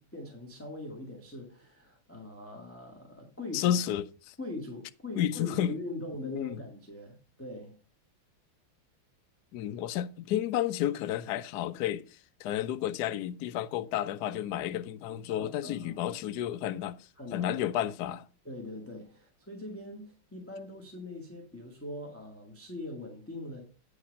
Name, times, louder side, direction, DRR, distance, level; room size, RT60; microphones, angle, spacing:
voice 1, 0.0-3.8 4.4-7.8 15.3-16.0 17.2-17.5 18.4-23.6, left 2 dB, 5° left, 1.5 m, -42 dB
voice 2, 3.5-4.3 5.2-5.8 6.2-6.6 9.5-12.0 12.4-17.0 17.3-18.3, left 11 dB, 85° left, 0.8 m, -31 dB
9.4 x 5.0 x 5.2 m
omnidirectional pair, 2.4 m